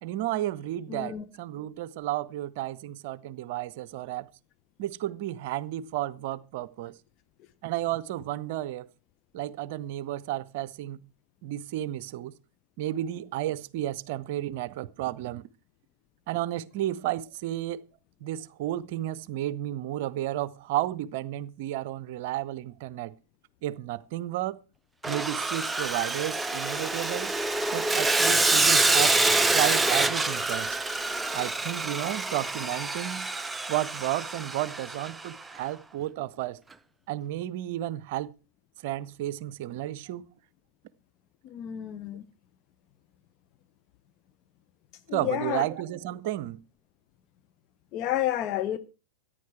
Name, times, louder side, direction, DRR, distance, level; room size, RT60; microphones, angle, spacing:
voice 1, 0.0-4.3 4.8-6.9 7.6-8.9 9.3-11.0 11.4-12.3 12.8-15.5 16.3-17.8 18.2-23.1 23.6-24.6 25.1-27.3 27.7-29.2 29.5-30.8 31.3-33.3 33.7-36.6 37.1-38.3 38.8-40.2 45.1-46.6, right 14 dB, 50° right, 0.6 m, -32 dB
voice 2, 0.9-1.2 41.4-42.2 45.1-45.7 47.9-48.8, left 12 dB, 40° left, 0.8 m, -30 dB
Sawing, 25.0-35.3, right 2 dB, 10° right, 0.5 m, -26 dB
14.0 x 10.0 x 4.7 m
figure-of-eight pair, 90°, 0 cm